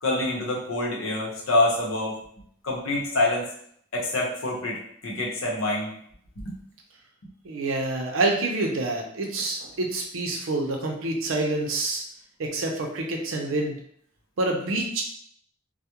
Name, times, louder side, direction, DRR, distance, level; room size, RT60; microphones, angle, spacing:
voice 1, 0.0-2.2 2.6-3.5 3.9-5.9 6.4-6.6, left 2 dB, 80° left, -2 dB, 0.7 m, -26 dB
voice 2, 7.4-12.0 12.4-13.8 14.4-15.0, right 2 dB, 85° right, 2 dB, 0.5 m, -27 dB
2.2 x 2.1 x 2.8 m, 0.65 s
head